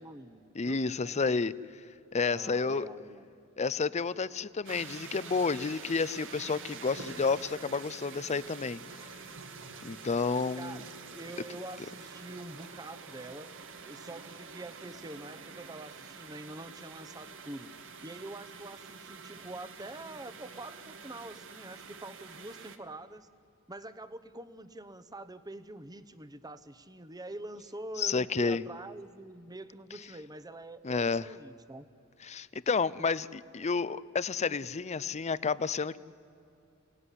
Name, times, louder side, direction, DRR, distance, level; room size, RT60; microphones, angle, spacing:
voice 1, 0.0-1.5 2.3-3.3 10.6-13.5 13.8-17.7 18.0-23.3 23.7-31.9, right 2 dB, 15° right, 13 dB, 0.9 m, -45 dB
voice 2, 0.6-1.5 2.1-2.9 3.6-8.8 9.8-10.8 28.0-28.6 30.8-31.2 32.3-36.0, left 4 dB, 30° left, 17 dB, 0.6 m, -30 dB
sound 1, 4.7-22.8, right 5 dB, 60° right, 1.6 m, -47 dB
28.0 x 18.0 x 10.0 m, 2.7 s
head